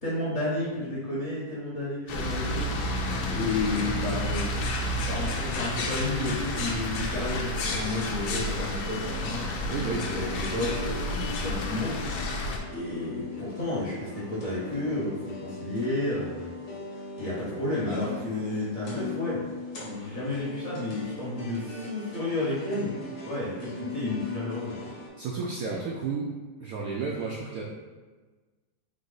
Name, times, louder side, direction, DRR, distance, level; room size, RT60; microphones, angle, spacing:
voice 1, 0.0-2.6 3.3-4.5 4.9-11.0 11.4-12.0 12.7-16.5 17.2-19.4 19.8-22.9 23.2-24.8, left 2 dB, 45° left, -7 dB, 1.2 m, -31 dB
sound 1, 2.1-12.6, left 1 dB, 90° left, 1.4 m, -31 dB
sound 2, 6.4-25.1, left 4 dB, 70° left, 1.6 m, -40 dB
voice 2, 9.7-10.0 25.2-26.3 26.6-27.6, right 4 dB, 80° right, -2 dB, 0.8 m, -32 dB
4.0 x 2.9 x 3.8 m, 1.3 s
omnidirectional pair, 2.1 m